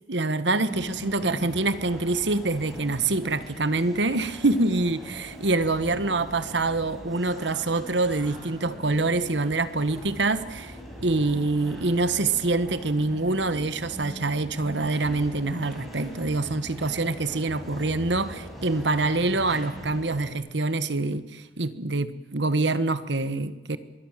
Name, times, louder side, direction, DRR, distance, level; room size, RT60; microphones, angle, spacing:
voice 1, 0.1-10.8 11.0-23.8, right 2 dB, 75° right, 13 dB, 1.4 m, -25 dB
sound 1, 0.7-20.3, equal, ahead, 5.8 m, -41 dB
25.5 x 22.0 x 7.5 m, 1.1 s
head